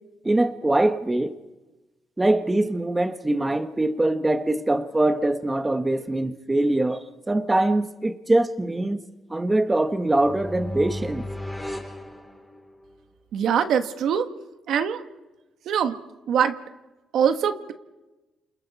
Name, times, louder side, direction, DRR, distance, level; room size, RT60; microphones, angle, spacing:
voice 1, 0.2-1.4 2.2-9.0 9.3-11.3, right 2 dB, 15° right, 1.4 m, -23 dB
sound 1, 9.9-12.9, left 1 dB, ahead, 3.7 m, -35 dB
voice 2, 13.3-14.3 14.7-15.0 15.6-16.0 16.3-16.6 17.1-17.7, right 8 dB, 75° right, 1.4 m, -23 dB
30.0 x 28.5 x 4.2 m
cardioid pair, 90°, 0 cm